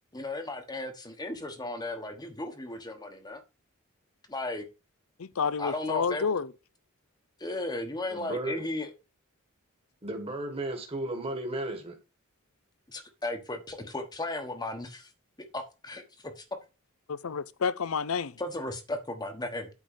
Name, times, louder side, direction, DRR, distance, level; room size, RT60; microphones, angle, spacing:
voice 1, 0.1-3.4 4.3-4.7 5.6-6.3 7.4-8.9 12.9-15.1 15.4-16.4 18.4-19.7, left 2 dB, 20° left, 1.2 m, -35 dB
voice 2, 5.2-6.5 17.1-18.4, left 5 dB, 75° left, 0.6 m, -30 dB
voice 3, 8.1-8.6 10.0-12.0, right 1 dB, 25° right, 1.7 m, -34 dB
8.9 x 3.9 x 6.8 m
head